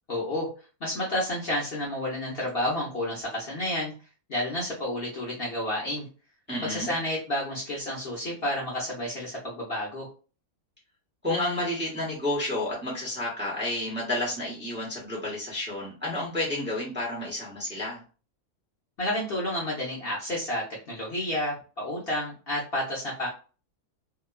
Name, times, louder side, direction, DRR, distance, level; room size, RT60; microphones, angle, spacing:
voice 1, 0.1-0.5 0.8-3.9 4.3-6.1 6.6-10.1 19.0-23.3, left 1 dB, 50° left, -5 dB, 0.9 m, -30 dB
voice 2, 6.5-6.9 11.2-18.0, left 1 dB, 10° right, -4 dB, 0.9 m, -30 dB
2.8 x 2.3 x 2.3 m, 0.35 s
omnidirectional pair, 1.6 m